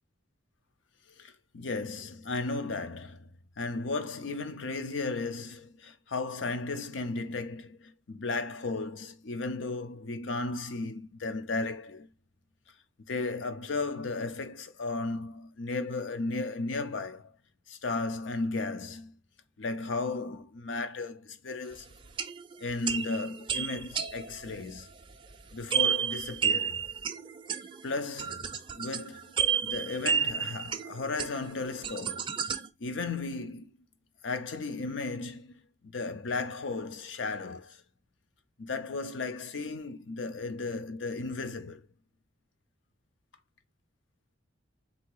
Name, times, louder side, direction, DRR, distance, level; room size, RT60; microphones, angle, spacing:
voice 1, 1.2-3.3 3.6-12.1 13.0-17.3 17.7-19.1 19.6-21.9 22.6-24.9 25.5-26.9 27.8-29.3 29.6-32.3 32.8-33.7 34.2-35.5 35.8-37.8 38.6-41.8, left 3 dB, 70° left, 0.6 m, -35 dB
sound 1, 22.0-32.7, right 7 dB, 25° right, 0.5 m, -32 dB
4.0 x 2.8 x 4.5 m
head